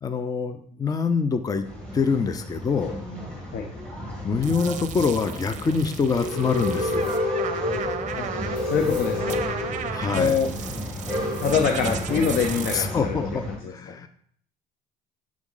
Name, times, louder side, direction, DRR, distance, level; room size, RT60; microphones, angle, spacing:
voice 1, 0.0-1.6 1.9-3.0 4.2-7.2 9.9-10.4 12.7-13.4 13.7-14.1, left 5 dB, 20° left, 9 dB, 0.4 m, -25 dB
Male speech man speaking / Chatter / Rattle, 1.6-13.6, left 1 dB, 5° left, 2.0 m, -30 dB
sound 1, 4.4-12.8, right 8 dB, 45° right, 0.5 m, -36 dB
voice 2, 8.6-9.4 10.1-10.5 11.4-13.2 13.5-13.7, left 6 dB, 65° left, 4 dB, 0.7 m, -24 dB
7.1 x 3.6 x 3.8 m, 0.62 s
cardioid pair, 110°, 17 cm